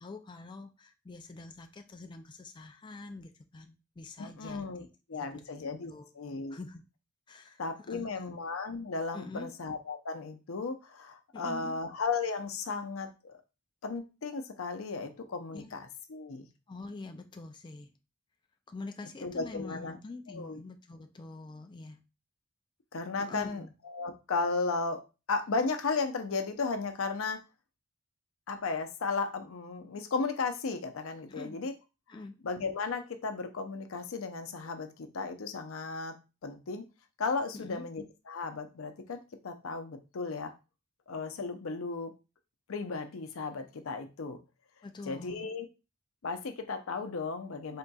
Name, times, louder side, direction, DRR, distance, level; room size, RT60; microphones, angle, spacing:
voice 1, 0.0-6.8 7.3-8.3 9.1-9.5 11.3-11.8 15.5-15.8 16.7-17.9 18.7-22.0 23.2-23.7 31.3-31.6 32.1-32.4 37.5-37.9 44.8-45.5, left 3 dB, 20° left, 5 dB, 0.3 m, -46 dB
voice 2, 4.2-4.8 5.1-5.9 6.2-6.6 7.6-13.4 13.8-16.5 19.2-20.0 20.3-20.6 22.9-25.0 25.3-27.4 28.5-31.7 32.4-36.2 36.4-36.8 37.2-40.5 41.1-42.1 42.7-44.4 45.1-45.7 46.2-47.8, left 4 dB, 85° left, 8 dB, 0.6 m, -35 dB
4.0 x 3.6 x 2.3 m, 0.29 s
head